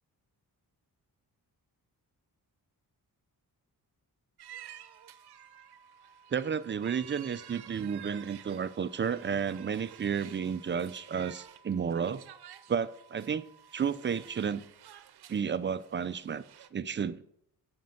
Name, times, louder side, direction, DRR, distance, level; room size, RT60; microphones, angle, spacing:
sound 1, 4.4-14.4, right 5 dB, 35° left, 2.5 m, -61 dB
sound 2, 4.4-16.7, right 11 dB, 80° right, 0.7 m, -52 dB
voice 1, 6.3-12.2 12.7-13.5 13.7-14.6 15.3-16.4 16.7-17.2, right 7 dB, 30° right, 0.4 m, -32 dB
9.3 x 5.3 x 7.7 m
wide cardioid pair, 125°, 38 cm